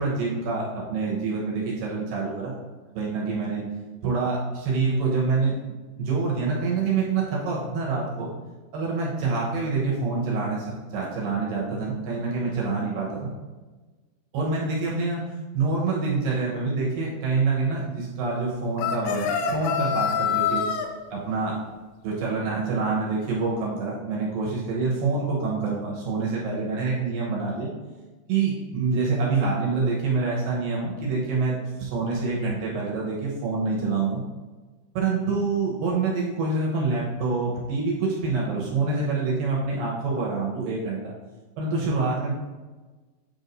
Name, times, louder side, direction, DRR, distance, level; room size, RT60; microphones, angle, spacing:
voice 1, 0.0-2.5 2.9-3.7 4.0-5.6 6.0-8.3 8.7-10.7 10.9-13.3 14.3-15.2 15.5-20.6 21.1-21.6 22.0-27.7 28.3-34.2 34.9-41.1 41.6-42.3, right 4 dB, 70° right, -4 dB, 2.5 m, -26 dB
sound 1, 18.8-20.9, left 7 dB, 85° left, 2.4 m, -25 dB
8.4 x 4.8 x 2.6 m, 1.3 s
omnidirectional pair, 4.8 m